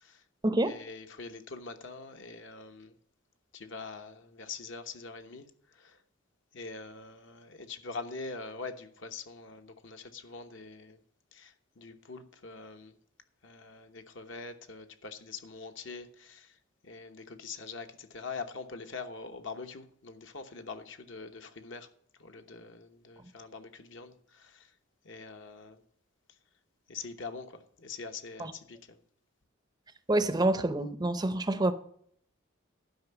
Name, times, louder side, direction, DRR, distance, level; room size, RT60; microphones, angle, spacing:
voice 1, 0.6-2.9 3.5-5.4 5.8-6.0 6.5-11.0 11.3-12.9 13.4-16.5 16.8-21.9 22.2-24.7 25.0-25.8 26.9-29.0, left 4 dB, 60° left, 1.0 m, -44 dB
voice 2, 30.1-31.7, right 2 dB, 20° right, 0.5 m, -27 dB
12.0 x 5.4 x 6.9 m
head